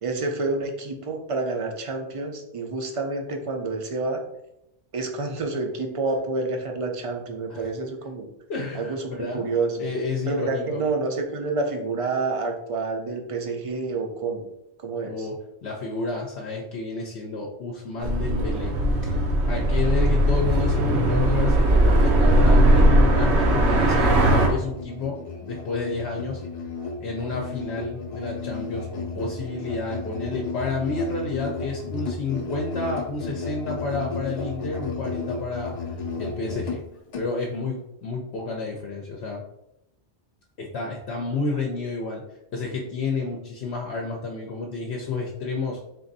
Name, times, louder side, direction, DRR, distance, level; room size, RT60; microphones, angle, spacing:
voice 1, 0.0-4.2 4.9-8.3 8.7-9.9 10.3-14.4 14.8-15.3, right 3 dB, 40° right, 3 dB, 0.5 m, -28 dB
voice 2, 8.5-9.5 9.8-10.8 15.0-18.8 19.0-19.2 19.5-26.4 27.0-36.8 37.2-39.4 40.6-42.2 42.5-45.8, left 3 dB, 70° left, -1 dB, 0.9 m, -30 dB
sound 1, 18.0-24.5, right 1 dB, 75° right, 1.0 m, -19 dB
Musical instrument, 22.8-37.3, left 4 dB, 45° left, 0.4 m, -34 dB
4.0 x 2.5 x 3.9 m, 0.84 s
omnidirectional pair, 1.1 m